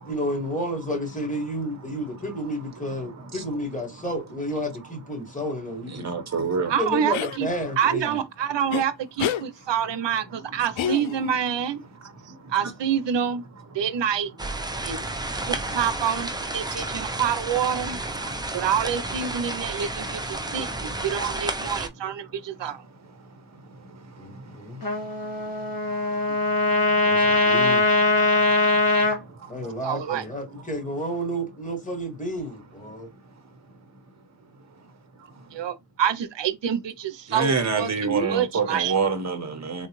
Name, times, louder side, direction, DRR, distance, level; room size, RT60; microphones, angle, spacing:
voice 1, 0.1-6.1 6.7-8.2 24.2-24.8 27.0-27.9 29.5-33.1, equal, 15° left, 2.1 m, -31 dB
voice 2, 5.9-6.7 15.3-15.4 17.1-17.2 18.2-18.3 21.2-21.3 28.6-28.7 37.3-39.9, right 5 dB, 35° right, 1.0 m, -26 dB
voice 3, 6.7-7.5 7.8-11.8 12.5-13.4 13.7-14.3 14.8-15.0 15.5-18.0 18.5-22.8 29.8-30.2 35.5-39.0, right 8 dB, 65° right, 0.7 m, -27 dB
sound 1, 7.1-7.4 8.7-8.8 9.2-9.4 10.8-11.4, left 9 dB, 85° left, 0.5 m, -28 dB
sound 2, 14.4-21.9, right 2 dB, 10° right, 0.5 m, -31 dB
Trumpet, 24.8-29.2, left 2 dB, 50° left, 2.0 m, -21 dB
3.9 x 2.3 x 3.0 m
cardioid pair, 70°, 46 cm